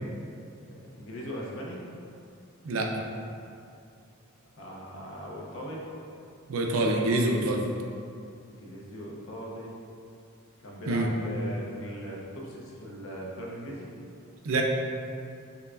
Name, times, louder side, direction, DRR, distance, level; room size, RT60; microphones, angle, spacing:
voice 1, 0.7-1.8 4.6-5.8 8.6-9.7 10.6-13.9, equal, 65° left, -3 dB, 0.6 m, -39 dB
voice 2, 6.5-7.6 10.9-11.1 14.4-14.6, right 2 dB, 65° right, 1 dB, 0.4 m, -25 dB
5.4 x 2.3 x 2.4 m, 2.5 s
head